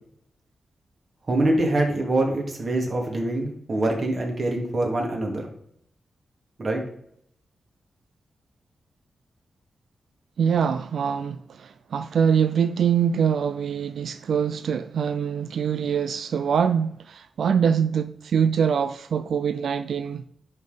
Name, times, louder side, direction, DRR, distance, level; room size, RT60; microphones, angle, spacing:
voice 1, 1.3-5.5 6.6-6.8, right 1 dB, 40° right, 2.3 m, -24 dB
voice 2, 10.4-20.2, right 7 dB, 80° right, 0.4 m, -24 dB
10.5 x 4.1 x 5.1 m
wide cardioid pair, 120°, 0 cm